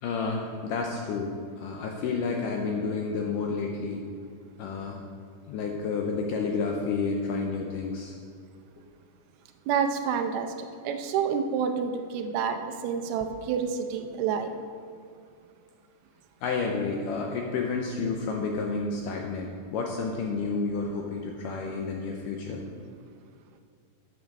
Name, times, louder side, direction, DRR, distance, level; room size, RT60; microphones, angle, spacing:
voice 1, 0.0-4.0 4.6-5.0 5.5-8.1 16.4-22.6, left 4 dB, 80° left, 1 dB, 1.9 m, -30 dB
voice 2, 9.7-14.5, right 7 dB, 80° right, 6 dB, 2.6 m, -28 dB
9.2 x 5.9 x 6.5 m, 2.4 s
omnidirectional pair, 4.5 m